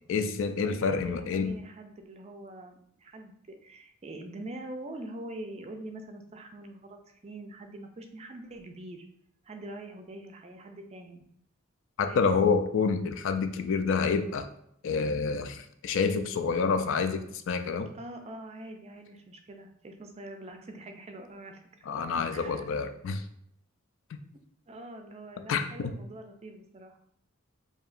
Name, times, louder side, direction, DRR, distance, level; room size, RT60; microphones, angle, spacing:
voice 1, 0.1-1.5 12.0-14.5 14.8-17.9 21.9-23.2 25.5-25.9, left 5 dB, 65° left, 8 dB, 0.4 m, -28 dB
voice 2, 0.6-3.3 3.6-9.0 9.4-11.3 12.1-12.4 17.9-21.6 22.3-22.7 24.3-27.0, right 1 dB, 30° right, 5 dB, 0.4 m, -44 dB
4.8 x 2.7 x 2.5 m, 0.72 s
head